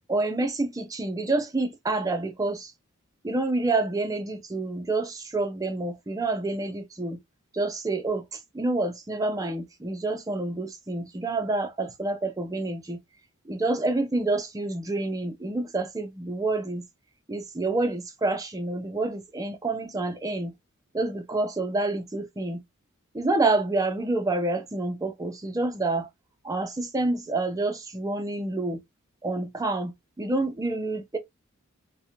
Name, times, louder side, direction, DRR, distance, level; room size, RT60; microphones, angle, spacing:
voice 1, 0.1-2.7 3.2-7.2 7.5-13.0 13.5-16.8 17.3-20.5 20.9-22.6 23.1-26.1 26.4-28.8 29.2-29.9 30.2-31.2, right 2 dB, 15° right, 0.4 m, -28 dB
2.4 x 2.1 x 2.9 m
head